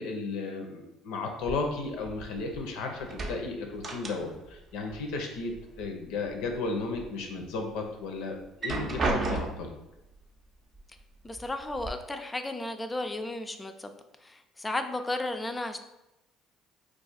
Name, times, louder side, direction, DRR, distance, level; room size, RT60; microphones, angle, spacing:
voice 1, 0.0-5.5 5.8-9.7, left 3 dB, 75° left, 3 dB, 0.6 m, -34 dB
sound 1, 1.4-2.7 3.0-4.6 4.9-5.9 6.3-7.1 7.5-7.6 8.4-9.8 10.8-10.9 11.3-11.9, right 3 dB, 40° right, 0.5 m, -34 dB
voice 2, 11.2-13.9 14.2-15.8, left 2 dB, 20° left, 7 dB, 0.4 m, -34 dB
2.4 x 2.4 x 4.0 m, 0.95 s
hypercardioid pair, 70°, 0 cm